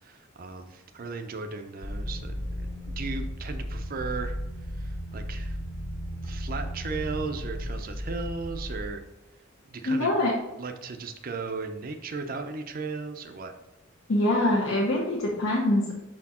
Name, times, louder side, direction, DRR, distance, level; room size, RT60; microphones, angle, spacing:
voice 1, 0.0-4.4 4.7-5.6 6.2-9.0 9.7-10.1 10.6-13.5, right 4 dB, 40° right, 6 dB, 0.5 m, -36 dB
sound 1, 1.8-8.9, equal, 20° left, 0.6 m, -35 dB
voice 2, 9.8-10.3 14.1-15.9, left 1 dB, 70° left, -3 dB, 1.0 m, -24 dB
6.3 x 4.3 x 4.2 m, 1.0 s
head